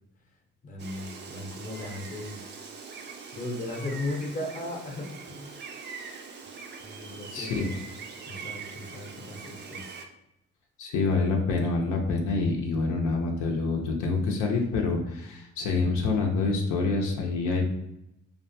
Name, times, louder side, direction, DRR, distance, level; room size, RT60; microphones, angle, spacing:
voice 1, 0.6-2.4 3.3-5.6 6.8-7.8 8.3-10.0, left 2 dB, 25° left, 1 dB, 0.7 m, -37 dB
Gull seagull, 0.8-10.1, right 5 dB, 35° right, 0.4 m, -42 dB
voice 2, 7.3-7.7 10.8-17.6, left 3 dB, 80° left, 1 dB, 0.6 m, -26 dB
2.4 x 2.2 x 2.6 m, 0.85 s
cardioid pair, 90°, 30 cm